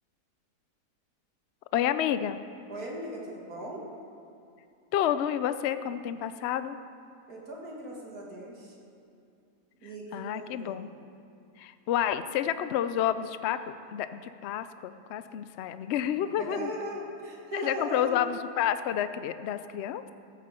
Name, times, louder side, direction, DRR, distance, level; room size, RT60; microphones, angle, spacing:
voice 1, 1.7-2.4 4.9-6.8 10.1-10.9 11.6-13.6 13.9-16.7 17.5-20.1, left 10 dB, 80° left, 12 dB, 0.6 m, -29 dB
voice 2, 2.7-3.8 7.3-8.8 9.8-10.8 16.4-18.2, right 1 dB, 60° right, -2 dB, 2.7 m, -38 dB
14.0 x 8.5 x 6.9 m, 2.6 s
omnidirectional pair, 1.8 m